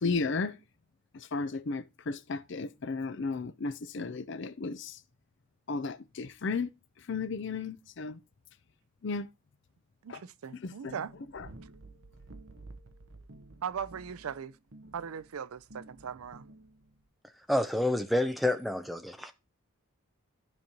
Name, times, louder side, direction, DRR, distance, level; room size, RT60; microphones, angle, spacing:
voice 1, 0.0-0.5 1.3-5.0 5.7-6.7 7.1-8.2 9.0-9.3 10.1-10.2 10.6-10.9, left 4 dB, 55° left, 0.5 m, -34 dB
voice 2, 10.0-11.1 13.6-14.6 14.9-16.5, right 7 dB, 80° right, 0.5 m, -39 dB
sound 1, 10.9-17.1, right 2 dB, 65° right, 0.9 m, -52 dB
voice 3, 17.5-19.3, left 1 dB, ahead, 0.5 m, -28 dB
13.0 x 5.2 x 2.9 m
head